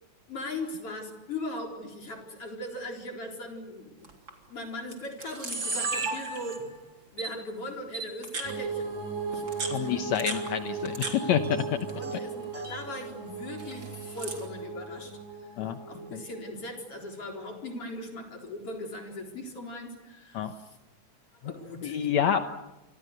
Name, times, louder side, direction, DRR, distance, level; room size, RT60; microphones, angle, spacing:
voice 1, 0.3-4.1 4.5-6.7 7.1-8.9 9.3-10.4 11.9-15.5 15.9-20.8 21.4-22.4, left 1 dB, 45° left, 2 dB, 5.0 m, -39 dB
Camera, 4.0-4.3 4.9-5.0 5.2-6.8 7.2-7.3 7.9-8.5 9.3-11.1 11.4-12.2 12.4-12.8 13.6-14.5, right 3 dB, 40° right, 4.0 m, -34 dB
sound 1, 8.4-17.2, right 4 dB, 65° right, 5.0 m, -37 dB
voice 2, 9.7-11.8 15.6-15.8 16.1-16.2 20.3-20.5 21.8-22.4, left 9 dB, 70° left, 8 dB, 2.2 m, -27 dB
28.0 x 25.0 x 6.8 m, 1.0 s
omnidirectional pair, 3.5 m